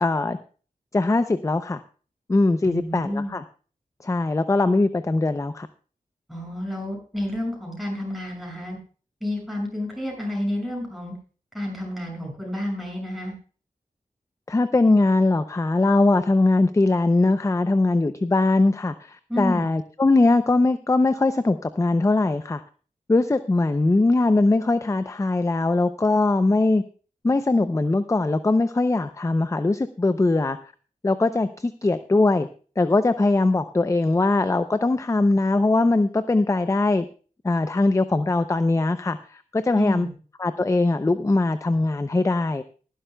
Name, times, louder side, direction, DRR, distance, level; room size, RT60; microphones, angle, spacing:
voice 1, 0.0-0.4 0.9-1.8 2.3-3.4 4.0-5.7 14.5-22.6 23.1-26.8 27.2-30.6 31.0-32.5 32.8-37.1 37.4-40.1 40.4-42.6, left 2 dB, 20° left, 12 dB, 0.5 m, -21 dB
voice 2, 2.6-3.3 6.3-8.8 9.2-11.1 11.5-13.3 19.3-19.6 39.7-40.1, left 1 dB, ahead, -1 dB, 6.4 m, -30 dB
20.0 x 11.5 x 2.3 m, 0.39 s
wide cardioid pair, 105°, 14 cm